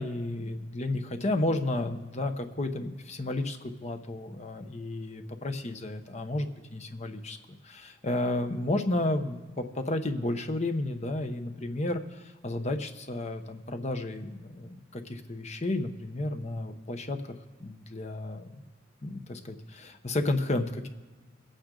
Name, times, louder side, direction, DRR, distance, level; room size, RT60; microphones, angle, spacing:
voice 1, 0.0-7.4 7.6-18.6 19.0-20.9, left 1 dB, 35° left, 7 dB, 0.8 m, -32 dB
22.5 x 9.0 x 3.8 m, 1.3 s
head